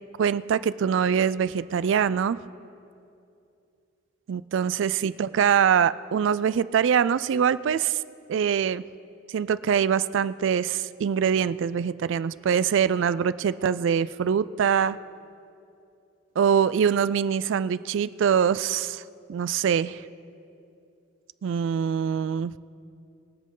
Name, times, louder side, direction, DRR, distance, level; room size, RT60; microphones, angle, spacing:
voice 1, 0.2-2.4 4.3-8.0 8.3-8.8 9.3-15.0 16.4-19.0 19.3-20.0 21.4-22.5, right 7 dB, 65° right, 17 dB, 0.3 m, -24 dB
22.0 x 7.5 x 3.8 m, 2.6 s
head